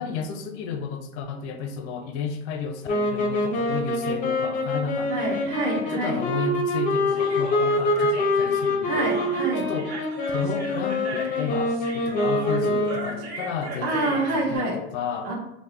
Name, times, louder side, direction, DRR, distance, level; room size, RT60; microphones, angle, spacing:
voice 1, 0.0-5.6 5.9-9.2 9.6-9.9 10.3-15.3, left 6 dB, 80° left, 5 dB, 0.5 m, -32 dB
sound 1, 2.8-13.3, left 1 dB, 25° left, 0.4 m, -25 dB
voice 2, 5.1-6.2 8.8-9.7 13.8-14.8 15.2-15.3, right 2 dB, 60° right, -6 dB, 1.2 m, -27 dB
Human voice, 7.1-14.4, right 2 dB, 85° right, 1.5 m, -37 dB
3.6 x 2.1 x 3.2 m, 0.91 s
supercardioid pair, 140°, 34 cm